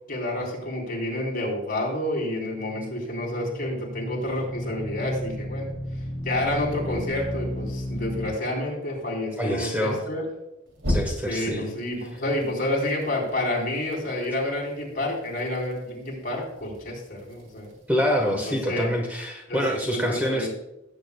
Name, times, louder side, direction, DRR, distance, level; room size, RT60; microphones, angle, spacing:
voice 1, 0.1-10.2 11.3-17.7 18.3-18.9 19.5-20.5, left 1 dB, 45° left, -2 dB, 3.6 m, -29 dB
sound 1, 2.5-8.3 10.8-11.6, left 1 dB, 70° right, 2.6 m, -32 dB
voice 2, 9.4-10.0 10.9-11.7 17.9-20.5, equal, 10° right, 1 dB, 1.1 m, -26 dB
17.5 x 8.3 x 2.2 m, 0.93 s
head